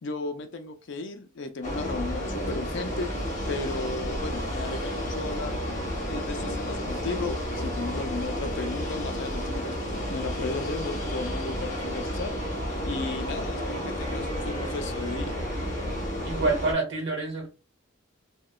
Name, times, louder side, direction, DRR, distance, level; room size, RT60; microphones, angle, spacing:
voice 1, 0.0-3.1 3.5-5.6 6.0-12.3 12.8-15.4, left 3 dB, 55° left, 0.4 m, -35 dB
sound 1, 1.6-16.7, equal, 35° left, 0.9 m, -31 dB
sound 2, 7.1-8.9 9.3-16.1, right 1 dB, 35° right, 1.1 m, -47 dB
voice 2, 16.2-17.5, right 3 dB, 55° right, 1.1 m, -27 dB
2.9 x 2.2 x 2.2 m
head